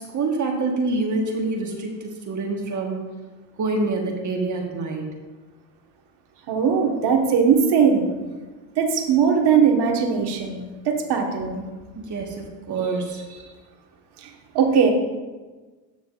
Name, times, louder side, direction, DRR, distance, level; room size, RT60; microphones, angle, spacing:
voice 1, 0.0-3.1 3.6-5.1 12.0-13.2, right 3 dB, 35° right, 0 dB, 1.4 m, -26 dB
voice 2, 6.5-8.1 8.8-11.6 14.5-14.9, right 6 dB, 50° right, 2 dB, 1.5 m, -19 dB
12.5 x 6.1 x 2.5 m, 1.3 s
hypercardioid pair, 75°, 49 cm